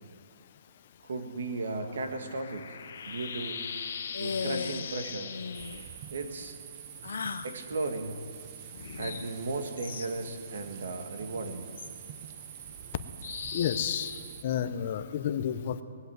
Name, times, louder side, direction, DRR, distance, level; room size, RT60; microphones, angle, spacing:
voice 1, 1.0-2.8 3.0-3.6 4.2-5.3 6.1-6.6 7.4-8.2 9.0-11.7 12.8-12.9, right 3 dB, 70° right, 6 dB, 1.7 m, -35 dB
sound 1, 1.4-5.9 8.7-10.1 11.8-11.9 13.2-15.1, left 6 dB, 55° left, 1.0 m, -41 dB
sound 2, 4.1-5.0 5.3-5.8 7.0-7.5, left 5 dB, 80° left, 0.6 m, -35 dB
sound 3, 5.5-14.4, right 10 dB, 30° right, 0.5 m, -46 dB
voice 2, 13.5-14.1 14.4-15.8, left 9 dB, 35° left, 11 dB, 0.6 m, -30 dB
19.5 x 8.0 x 7.9 m, 2.5 s
hypercardioid pair, 170°, 0 cm